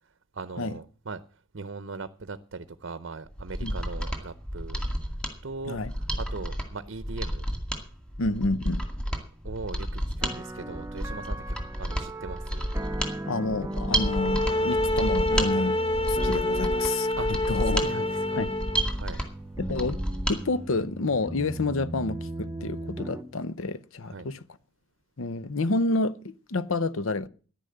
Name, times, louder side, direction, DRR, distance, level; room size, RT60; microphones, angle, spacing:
voice 1, 0.3-4.8 5.4-7.5 9.4-11.4 11.8-12.7 17.2-18.4 18.9-19.2 24.0-24.3, right 4 dB, 60° right, 0.7 m, -39 dB
Mechanisms, 3.3-20.4 20.7-20.8, right 1 dB, 5° left, 2.1 m, -31 dB
voice 2, 8.2-8.8 13.2-15.8 16.1-17.1 17.5-17.9 18.3-18.5 19.6-20.0 20.3-24.4 25.2-27.3, left 2 dB, 70° left, 0.7 m, -29 dB
sound 1, 10.2-23.2, right 1 dB, 15° right, 0.9 m, -37 dB
sound 2, 13.9-18.9, left 2 dB, 25° left, 0.8 m, -27 dB
11.0 x 10.0 x 7.8 m
head